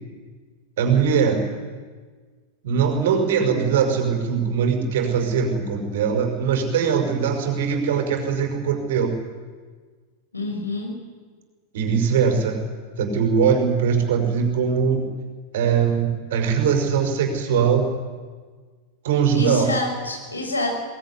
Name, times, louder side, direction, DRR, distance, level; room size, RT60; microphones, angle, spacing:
voice 1, 0.8-1.5 2.6-9.2 11.7-12.6 13.0-15.1 15.5-17.9 19.0-19.7, right 6 dB, 55° right, 4 dB, 5.6 m, -21 dB
voice 2, 10.3-10.9 19.3-20.7, left 2 dB, 80° left, 2 dB, 6.2 m, -27 dB
23.0 x 19.5 x 9.9 m, 1.5 s
figure-of-eight pair, 90°, 0 cm